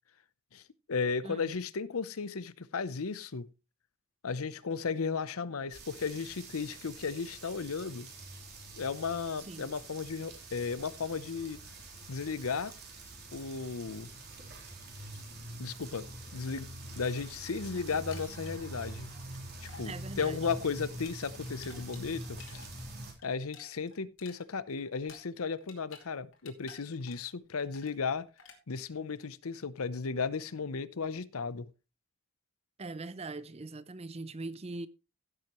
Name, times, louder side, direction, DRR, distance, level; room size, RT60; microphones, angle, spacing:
voice 1, 0.9-3.5 4.2-8.1 8.8-11.6 12.1-12.7 13.3-14.1 15.6-16.1 16.3-16.7 17.0-19.1 19.6-22.6 23.2-28.3 28.7-31.7, left 5 dB, 85° left, 0.7 m, -35 dB
sound 1, 5.7-23.1, right 2 dB, 50° right, 3.6 m, -45 dB
sound 2, 18.1-19.4 19.7-19.9 20.2-22.7 23.0-26.1 26.3-27.3 27.6-28.0 28.4-28.6, left 5 dB, 65° left, 2.7 m, -53 dB
voice 2, 19.8-20.4 32.8-34.9, right 3 dB, 30° right, 0.5 m, -41 dB
16.0 x 7.7 x 3.1 m
head